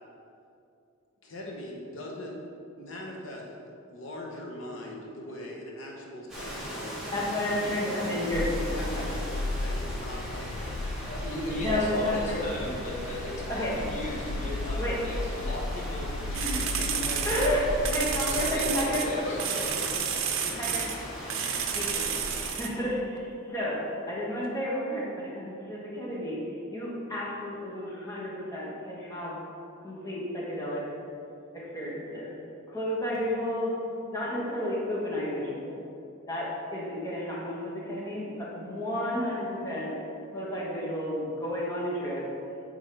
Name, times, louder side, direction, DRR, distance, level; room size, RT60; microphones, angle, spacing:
voice 1, 1.2-2.4 2.8-3.5 3.9-8.1 8.4-10.8 12.3-12.4 19.2-20.0 20.4-20.9, left 1 dB, 65° left, -1 dB, 1.1 m, -41 dB
Rain, 6.3-22.5, equal, 5° right, 1.5 m, -39 dB
voice 2, 7.1-9.0 11.6-12.5 13.5-13.8 14.8-15.0 17.2-19.0 19.6-19.7 20.6-20.8 21.7-22.1 22.5-26.4 26.7-29.4 29.8-30.9 31.5-32.3 32.7-33.8 34.1-35.8 36.3-39.9 40.3-42.3, left 1 dB, 15° left, -6 dB, 1.2 m, -31 dB
sound 1, 8.3-18.7, left 2 dB, 90° left, 0.4 m, -35 dB
voice 3, 11.1-17.5 18.2-19.6, left 1 dB, 35° left, -5 dB, 1.3 m, -36 dB
sound 2, 16.3-19.1 19.4-21.0 21.3-22.7, right 8 dB, 75° right, 0.6 m, -31 dB
8.9 x 3.6 x 3.4 m, 2.6 s
head